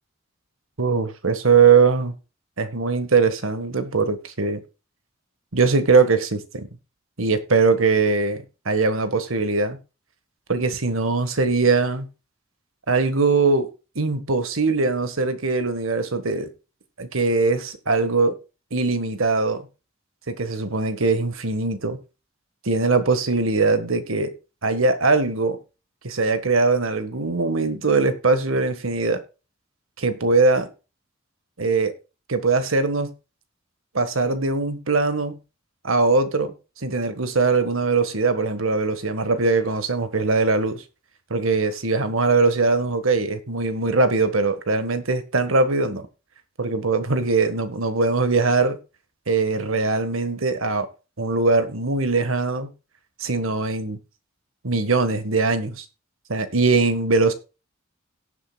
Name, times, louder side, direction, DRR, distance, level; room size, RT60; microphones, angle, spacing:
voice 1, 0.8-2.1 2.6-4.6 5.5-6.7 7.2-9.8 10.5-12.1 12.9-13.7 13.9-16.5 17.0-18.3 18.7-19.7 20.3-22.0 22.6-24.3 24.6-25.6 26.0-29.2 30.0-30.7 31.6-31.9 32.3-33.1 33.9-35.4 35.8-36.5 36.8-40.8 41.3-46.1 46.6-48.8 49.3-50.9 51.2-52.7 53.2-54.0 54.6-55.8 56.3-57.3, right 4 dB, 80° right, 1.5 m, -21 dB
18.0 x 7.6 x 2.3 m
head